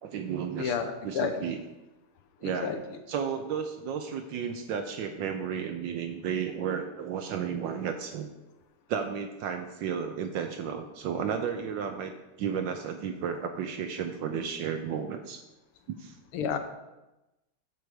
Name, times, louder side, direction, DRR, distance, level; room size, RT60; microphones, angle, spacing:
voice 1, 0.0-0.8 1.0-1.6 2.4-2.7 3.1-8.3 8.9-12.1 12.4-15.4 15.9-16.2, right 7 dB, 70° right, 6 dB, 1.2 m, -33 dB
voice 2, 0.6-1.5 2.4-2.8 16.3-16.6, left 6 dB, 80° left, 7 dB, 1.7 m, -31 dB
7.8 x 6.8 x 4.8 m, 1.0 s
omnidirectional pair, 2.4 m